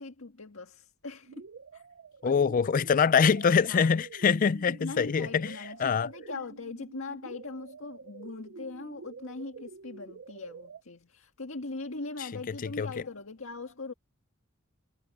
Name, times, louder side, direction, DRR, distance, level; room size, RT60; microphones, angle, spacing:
voice 1, 0.0-1.4 1.7-1.8 2.2-2.4 3.6-4.0 4.8-13.9, left 3 dB, 75° left, 1.8 m, -40 dB
sound 1, 1.3-10.8, right 5 dB, 60° right, 0.5 m, -48 dB
voice 2, 2.2-5.5 5.8-6.1 12.8-12.9, left 6 dB, 40° left, 0.4 m, -24 dB
head